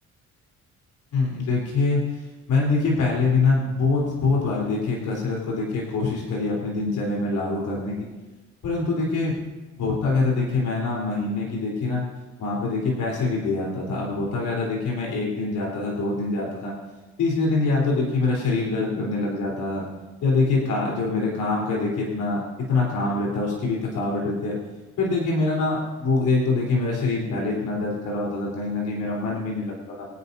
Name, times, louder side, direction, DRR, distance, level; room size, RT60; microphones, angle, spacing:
voice 1, 1.1-2.0 2.5-8.1 8.6-9.4 9.8-12.0 12.4-16.7 17.2-19.8 20.2-24.6 25.0-30.1, left 3 dB, 80° left, -3 dB, 3.9 m, -24 dB
23.0 x 9.8 x 2.7 m, 1.2 s
cardioid pair, 90°, 30 cm